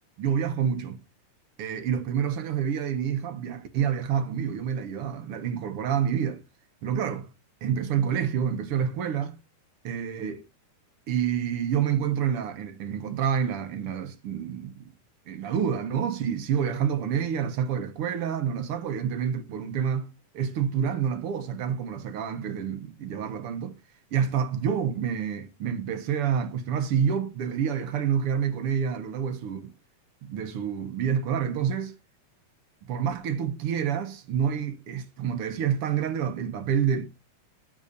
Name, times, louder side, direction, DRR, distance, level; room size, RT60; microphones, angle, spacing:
voice 1, 0.2-1.0 1.6-6.4 6.8-7.3 7.6-9.4 9.8-10.4 11.1-14.9 15.3-23.8 24.1-29.7 30.2-32.0 32.8-37.1, right 8 dB, 60° right, 1.6 m, -28 dB
11.5 x 4.3 x 6.8 m
omnidirectional pair, 3.8 m